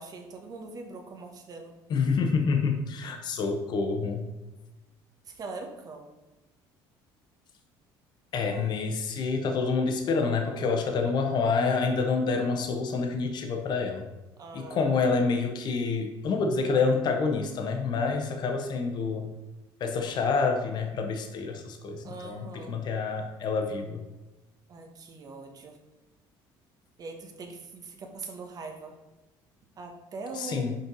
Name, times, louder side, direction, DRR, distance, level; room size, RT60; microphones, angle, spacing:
voice 1, 0.0-1.7 5.2-6.1 8.4-8.8 14.4-15.0 22.0-22.8 24.7-25.8 27.0-29.0 29.8-30.7, right 3 dB, 40° right, 3 dB, 1.2 m, -42 dB
voice 2, 1.9-4.3 8.3-14.1 14.5-19.3 19.8-24.0 30.4-30.8, left 4 dB, 50° left, 4 dB, 0.9 m, -27 dB
5.5 x 4.4 x 5.3 m, 1.1 s
cardioid pair, 115°, 10 cm